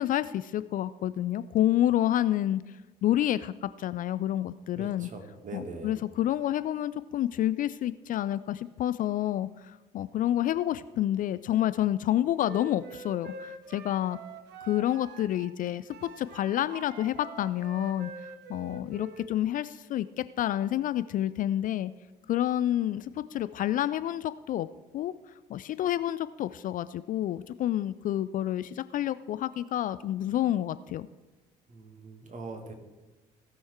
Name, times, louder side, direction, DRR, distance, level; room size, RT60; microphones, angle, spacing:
voice 1, 0.0-5.1 5.5-14.2 14.6-21.9 22.3-24.7 24.9-25.1 25.5-31.1, left 12 dB, 40° left, 15 dB, 0.4 m, -29 dB
voice 2, 4.8-5.9 31.7-32.7, right 3 dB, 35° right, 4 dB, 2.0 m, -42 dB
Wind instrument woodwind instrument, 12.4-15.6 15.9-19.3, right 4 dB, 55° right, 1.2 m, -45 dB
17.0 x 6.3 x 4.6 m, 1.2 s
figure-of-eight pair, 50°, 21 cm